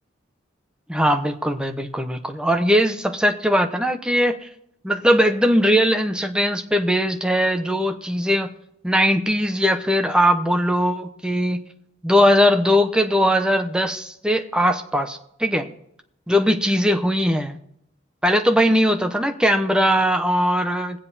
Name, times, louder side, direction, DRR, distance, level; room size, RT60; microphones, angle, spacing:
voice 1, 0.9-4.5 4.8-8.5 8.8-11.6 12.0-15.7 16.3-17.6 18.2-21.0, equal, 5° right, 6 dB, 0.8 m, -20 dB
21.0 x 7.7 x 4.2 m, 0.73 s
head